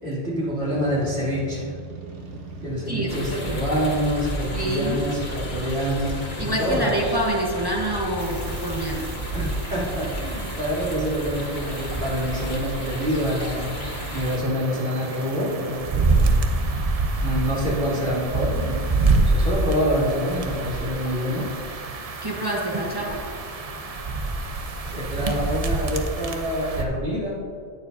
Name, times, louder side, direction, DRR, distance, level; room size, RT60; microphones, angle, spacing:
voice 1, 0.0-1.7 2.6-7.1 9.3-13.8 14.1-16.0 17.2-21.5 24.9-27.4, equal, 65° right, -7 dB, 3.1 m, -26 dB
sound 1, 0.6-18.2, right 2 dB, 90° right, 1.5 m, -42 dB
voice 2, 2.9-3.6 4.5-5.0 6.4-9.3 22.2-23.3, right 1 dB, 20° right, -2 dB, 1.1 m, -27 dB
sound 2, 3.1-14.4, equal, 45° left, 1.7 m, -33 dB
sound 3, 8.2-26.8, right 3 dB, 40° right, 0.7 m, -27 dB
17.5 x 7.0 x 2.7 m, 2.4 s
omnidirectional pair, 1.2 m